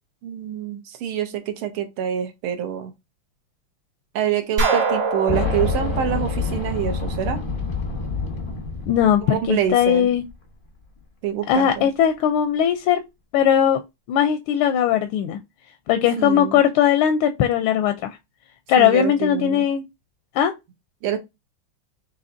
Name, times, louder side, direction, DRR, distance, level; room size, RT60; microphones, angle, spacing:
voice 1, 0.2-2.9 4.2-7.4 9.2-10.1 11.2-11.9 16.2-16.6 18.8-19.7 21.0-21.2, right 9 dB, 75° right, 1.7 m, -26 dB
sound 1, 4.6-7.4, right 4 dB, 55° right, 1.5 m, -25 dB
Boom, 5.3-10.0 10.3-10.4 11.5-11.6, left 4 dB, 45° left, 0.7 m, -27 dB
voice 2, 8.8-10.2 11.5-13.0 13.3-13.8 14.1-15.4 15.9-18.2 18.7-19.8 20.3-20.5, left 9 dB, 80° left, 1.4 m, -19 dB
6.8 x 2.9 x 2.6 m
omnidirectional pair, 2.4 m